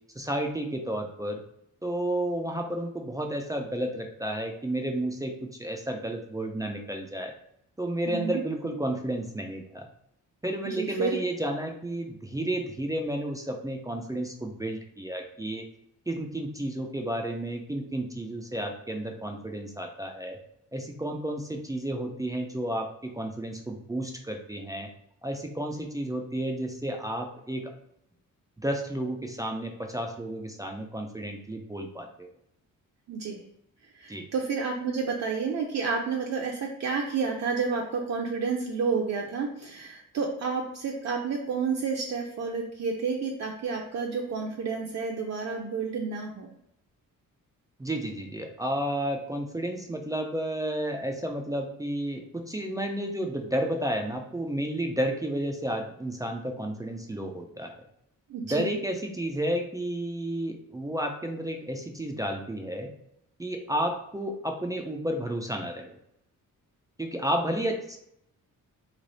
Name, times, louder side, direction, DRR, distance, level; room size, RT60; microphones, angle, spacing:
voice 1, 0.2-1.4 1.8-7.3 7.8-9.9 10.4-15.6 16.1-20.4 20.7-24.9 25.2-27.7 28.6-32.3 34.1-34.3 47.8-57.8 58.4-62.9 63.4-66.0 67.0-68.0, right 1 dB, 10° right, 3 dB, 0.4 m, -32 dB
voice 2, 8.1-8.4 10.6-11.2 33.1-33.4 33.9-46.5 58.3-58.8, right 5 dB, 55° right, 0 dB, 0.6 m, -30 dB
3.2 x 2.9 x 4.0 m, 0.75 s
wide cardioid pair, 140°, 33 cm